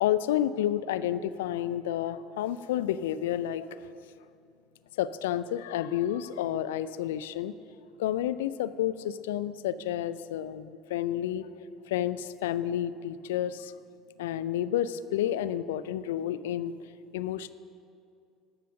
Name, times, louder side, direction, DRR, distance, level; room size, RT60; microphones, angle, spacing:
voice 1, 0.0-3.7 5.0-7.5 8.0-11.5 11.9-13.7 14.2-16.7 17.1-17.5, left 11 dB, 85° left, 15 dB, 0.3 m, -30 dB
11.5 x 6.9 x 6.3 m, 2.5 s
hypercardioid pair, 75°, 0 cm